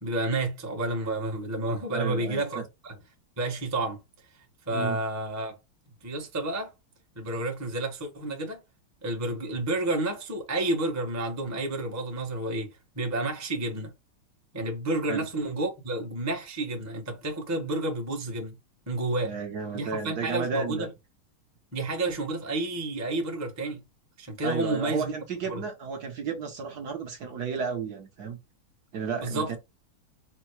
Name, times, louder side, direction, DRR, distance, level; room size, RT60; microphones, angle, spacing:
voice 1, 0.0-3.0 3.4-4.0 4.7-5.6 6.0-6.7 7.1-8.6 9.0-13.9 14.5-18.5 18.9-19.3 19.7-20.9 21.7-23.8 24.2-25.1 25.5-25.7 29.2-29.5, right 2 dB, 15° right, 0.5 m, -30 dB
voice 2, 1.9-2.6 4.7-5.0 15.1-15.2 19.2-20.9 24.4-28.4 28.9-29.6, right 5 dB, 60° right, 1.2 m, -33 dB
4.4 x 2.1 x 4.5 m
omnidirectional pair, 2.3 m